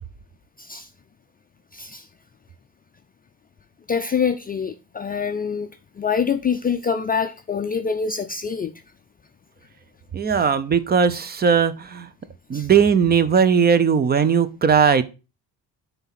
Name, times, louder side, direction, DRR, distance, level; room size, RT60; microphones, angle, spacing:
voice 1, 1.7-2.0 3.9-5.7 6.0-8.7 12.5-12.7, left 6 dB, 25° left, 0.5 m, -25 dB
voice 2, 10.1-12.1 12.5-15.0, right 6 dB, 25° right, 0.7 m, -18 dB
9.5 x 3.6 x 5.9 m
cardioid pair, 130°, 39 cm